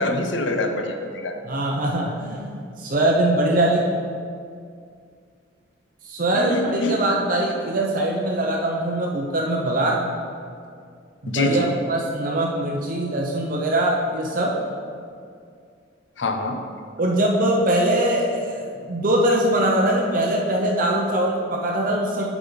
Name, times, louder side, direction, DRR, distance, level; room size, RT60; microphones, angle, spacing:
voice 1, 0.0-1.4 6.3-7.0 11.3-11.7 16.2-16.6, left 1 dB, 65° left, 5 dB, 0.7 m, -25 dB
voice 2, 1.4-3.9 6.0-10.0 11.2-14.5 17.0-22.2, right 1 dB, 45° right, -1 dB, 0.7 m, -22 dB
8.5 x 6.0 x 3.9 m, 2.2 s
head